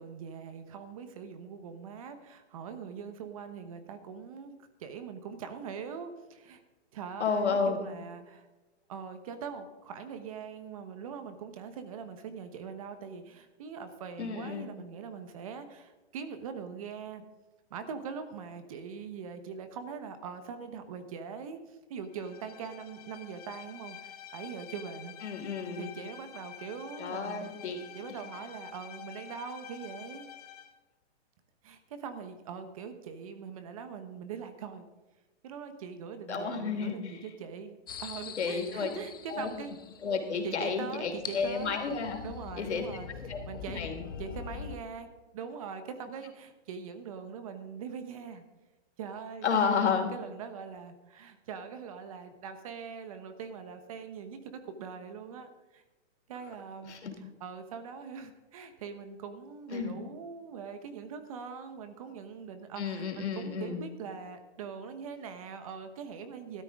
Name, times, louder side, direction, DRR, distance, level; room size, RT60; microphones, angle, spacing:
voice 1, 0.0-4.5 4.8-6.6 6.9-8.5 8.9-17.2 17.7-25.1 25.8-27.5 27.9-30.3 31.6-34.8 35.4-39.7 40.4-41.8 42.2-43.8 44.2-45.1 45.3-48.4 49.0-55.8 56.3-56.9 57.4-66.6, right 6 dB, 30° right, 9 dB, 1.1 m, -42 dB
voice 2, 7.2-7.9 14.2-14.7 25.2-25.9 27.0-27.8 36.3-37.2 38.4-38.9 39.3-39.5 40.0-42.2 42.6-42.9 43.3-43.4 43.7-44.0 49.4-50.1 56.9-57.1 59.7-60.0 62.8-63.8, left 5 dB, 80° left, 3 dB, 3.2 m, -31 dB
Bowed string instrument, 22.1-30.8, left 10 dB, 35° left, 0.9 m, -48 dB
sound 1, 37.9-44.8, left 7 dB, 20° left, 0.5 m, -44 dB
13.5 x 13.0 x 3.7 m, 1.1 s
hypercardioid pair, 170°, 33 cm